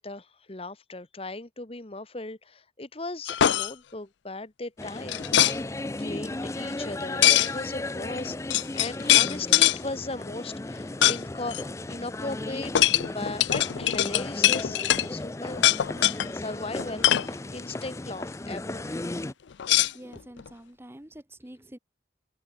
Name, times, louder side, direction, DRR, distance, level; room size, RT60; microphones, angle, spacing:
voice 1, 0.0-5.6 6.0-11.6 11.9-12.7 13.1-15.6 16.3-19.1, left 2 dB, 30° left, 1.3 m, -37 dB
sound 1, 3.3-3.7 5.1-5.6 7.2-7.5 8.2-8.3 8.5-9.8 11.0-11.2 11.5-11.6 12.8-15.1 15.6-16.3 16.8-17.3 19.6-20.5, left 13 dB, 70° left, 0.4 m, -22 dB
sound 2, 4.8-19.3, left 2 dB, 15° left, 0.4 m, -35 dB
sound 3, 8.1-20.2, left 4 dB, 90° left, 6.7 m, -66 dB
voice 2, 19.9-21.8, right 1 dB, 10° right, 1.1 m, -46 dB
open air
head